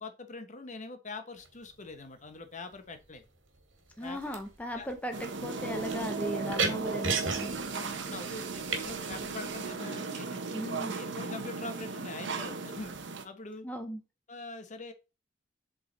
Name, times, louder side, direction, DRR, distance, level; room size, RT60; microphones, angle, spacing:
voice 1, 0.0-3.2 4.0-4.2 4.8-4.9 7.7-10.4 10.8-12.9 13.2-13.7 14.3-14.9, left 3 dB, 40° left, 1.0 m, -43 dB
sound 1, 1.4-1.8 2.7-3.2 3.5-9.7, right 4 dB, 85° right, 2.0 m, -36 dB
voice 2, 4.0-7.5 10.5-11.0 13.6-14.0, equal, 10° left, 0.6 m, -37 dB
sound 2, 5.1-13.3, right 4 dB, 65° right, 1.0 m, -36 dB
7.7 x 3.8 x 4.0 m
head